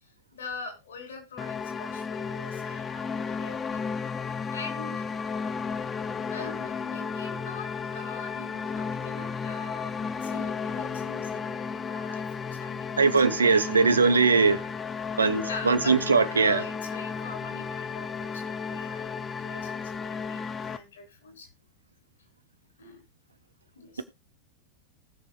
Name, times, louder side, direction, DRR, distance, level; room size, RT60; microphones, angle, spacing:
voice 1, 0.0-3.8 4.5-5.1 6.3-14.4 15.4-16.0 16.2-21.5 22.8-23.0 23.7-24.0, left 3 dB, 65° left, 4.5 m, -44 dB
sound 1, 1.4-20.8, left 5 dB, 20° left, 0.8 m, -34 dB
voice 2, 13.0-14.6 15.2-16.6, right 4 dB, 75° right, 1.0 m, -21 dB
19.5 x 7.0 x 2.4 m
figure-of-eight pair, 90°, 0 cm